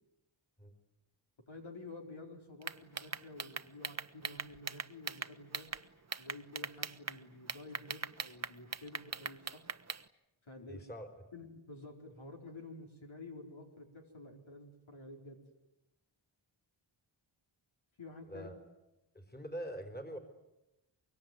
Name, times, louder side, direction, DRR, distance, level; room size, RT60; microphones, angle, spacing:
voice 1, 1.5-5.7 6.2-9.6 10.5-10.9 11.3-15.4 18.0-18.6, left 2 dB, 70° left, 1 dB, 4.7 m, -50 dB
sound 1, 2.6-5.8 6.1-7.2 7.5-10.0, right 5 dB, 35° right, 0.9 m, -40 dB
voice 2, 10.7-11.2 18.3-18.6 19.1-20.2, right 1 dB, 20° left, 5 dB, 4.2 m, -44 dB
24.5 x 23.5 x 9.5 m, 0.95 s
wide cardioid pair, 65°, 48 cm